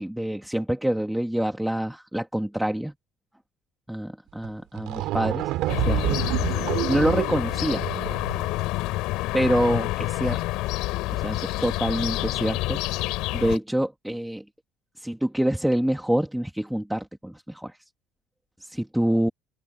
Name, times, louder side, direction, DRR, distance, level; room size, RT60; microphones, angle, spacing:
voice 1, 0.0-2.9 3.9-5.5 5.9-7.8 9.3-10.4 11.1-12.8 13.3-14.4 15.0-17.8 18.6-19.3, right 1 dB, ahead, 1.2 m, -26 dB
sound 1, 4.4-4.5 4.8-8.5, right 15 dB, 70° right, 1.7 m, -28 dB
sound 2, 5.7-13.6, left 19 dB, 75° left, 5.5 m, -28 dB
cardioid pair, 155°, 0 cm